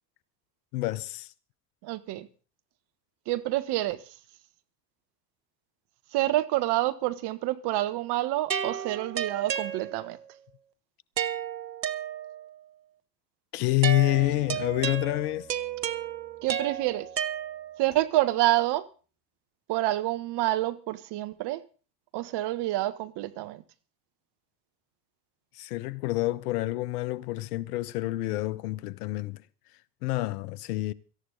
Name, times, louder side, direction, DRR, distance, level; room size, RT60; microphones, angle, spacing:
voice 1, 0.7-1.3 13.5-15.5 25.6-29.4 30.0-30.9, left 19 dB, 65° left, 1.0 m, -28 dB
voice 2, 1.8-2.3 3.3-4.0 6.1-10.2 16.4-17.1 17.8-18.9 19.7-21.6 22.1-23.6, right 16 dB, 55° right, 1.4 m, -28 dB
sound 1, 8.5-10.3 11.2-12.6 13.8-17.9, right 9 dB, 90° right, 0.8 m, -33 dB
Bass guitar, 14.1-17.7, right 3 dB, 25° right, 3.6 m, -54 dB
17.5 x 14.0 x 4.0 m
figure-of-eight pair, 65°, 49 cm